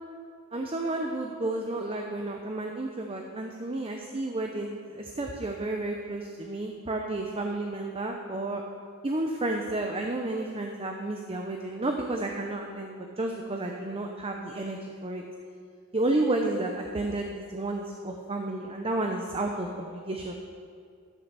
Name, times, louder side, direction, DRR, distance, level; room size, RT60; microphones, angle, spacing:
voice 1, 0.5-8.6 9.0-15.2 15.9-20.4, right 2 dB, 25° right, 2 dB, 0.7 m, -31 dB
12.0 x 6.8 x 6.9 m, 2.2 s
head